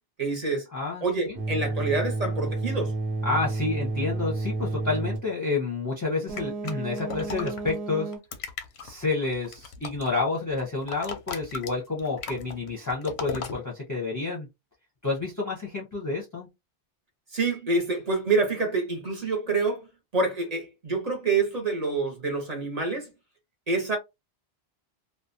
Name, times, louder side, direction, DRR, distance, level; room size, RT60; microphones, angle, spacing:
voice 1, 0.2-0.7 1.0-2.9 17.3-19.9 20.1-23.1 23.7-24.0, right 3 dB, 45° right, 0.7 m, -27 dB
voice 2, 0.7-1.4 3.2-8.1 8.8-14.5 15.0-16.5, left 3 dB, 20° left, 0.5 m, -29 dB
sound 1, 1.3-5.3 6.3-8.2, right 3 dB, 85° right, 1.0 m, -30 dB
sound 2, 6.4-7.7 8.1-10.2 10.5-13.6, left 5 dB, 90° left, 0.8 m, -37 dB
2.5 x 2.1 x 2.5 m
omnidirectional pair, 1.0 m